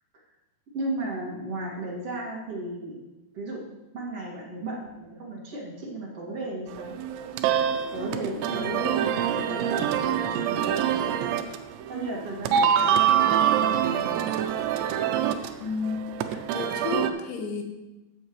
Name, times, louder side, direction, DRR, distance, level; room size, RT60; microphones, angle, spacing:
voice 1, 0.7-3.0 3.3-6.9 7.9-11.2 11.9-14.4, right 2 dB, 45° right, -4 dB, 2.4 m, -35 dB
sound 1, 6.7-17.1, right 9 dB, 85° right, 2.9 m, -25 dB
voice 2, 15.6-17.6, left 4 dB, 85° left, 3 dB, 3.4 m, -32 dB
15.5 x 7.2 x 3.1 m, 1.0 s
omnidirectional pair, 5.1 m